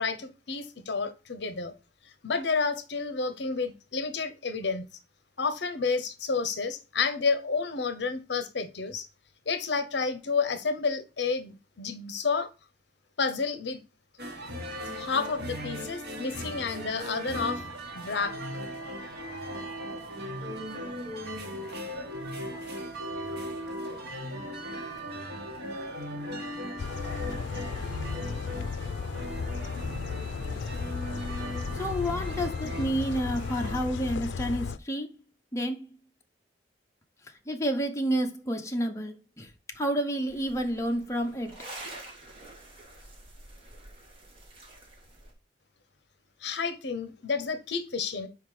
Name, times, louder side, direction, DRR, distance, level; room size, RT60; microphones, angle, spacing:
voice 1, 0.0-1.7 2.2-4.9 5.4-9.1 9.5-12.5 13.2-13.8 14.9-17.6 17.9-18.4 46.4-48.3, left 4 dB, 65° left, 0.8 m, -30 dB
sound 1, 14.2-33.8, equal, 60° right, 1.8 m, -38 dB
sound 2, 26.8-34.8, left 5 dB, 85° left, 0.4 m, -35 dB
voice 2, 31.7-35.1 35.5-35.8 37.5-41.7, equal, 15° left, 0.9 m, -30 dB
sound 3, 40.3-45.3, right 2 dB, 30° right, 1.9 m, -47 dB
5.7 x 4.7 x 4.9 m
head